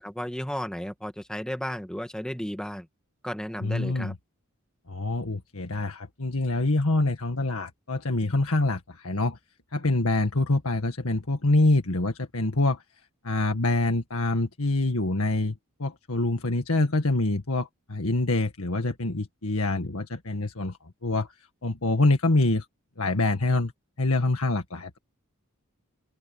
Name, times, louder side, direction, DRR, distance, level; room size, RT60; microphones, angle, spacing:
voice 1, 0.0-2.9 3.2-4.1, equal, 5° left, 1.6 m, -34 dB
voice 2, 3.6-4.1 4.9-9.4 9.7-12.8 13.2-20.8 21.0-21.3 21.6-22.7 23.0-23.7 24.0-25.0, left 2 dB, 75° left, 1.8 m, -25 dB
open air
head